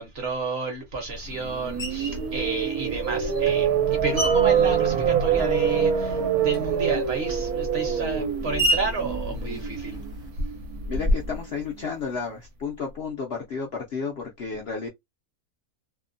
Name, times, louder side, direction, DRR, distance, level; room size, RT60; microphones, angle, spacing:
voice 1, 0.0-10.0, right 3 dB, 50° right, 0.9 m, -31 dB
sound 1, 1.3-11.4, right 7 dB, 80° right, 1.1 m, -25 dB
Screech, 1.8-2.3 3.0-5.7 6.0-10.3, right 1 dB, 25° left, 0.6 m, -33 dB
Keyboard (musical), 4.2-6.0, right 2 dB, 30° right, 0.4 m, -38 dB
voice 2, 10.9-14.9, left 5 dB, 65° left, 0.6 m, -32 dB
2.7 x 2.1 x 2.5 m
omnidirectional pair, 1.6 m